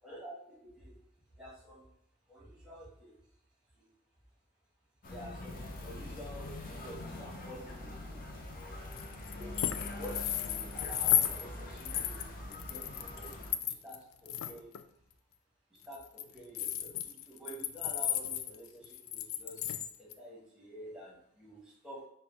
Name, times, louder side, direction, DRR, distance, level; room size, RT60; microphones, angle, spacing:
voice 1, 0.0-0.9 1.4-1.8 2.3-3.1 5.1-6.5 6.8-8.2 9.3-9.6 10.0-13.3 13.6-14.7 15.9-19.6 20.0-22.1, equal, 5° right, -5 dB, 1.2 m, -49 dB
sound 1, 5.0-13.5, left 1 dB, 45° left, 0.6 m, -44 dB
sound 2, 8.9-11.4 11.8-14.0 14.2-14.8 15.8-20.1, left 11 dB, 90° left, 0.3 m, -34 dB
4.3 x 2.3 x 3.7 m, 0.72 s
head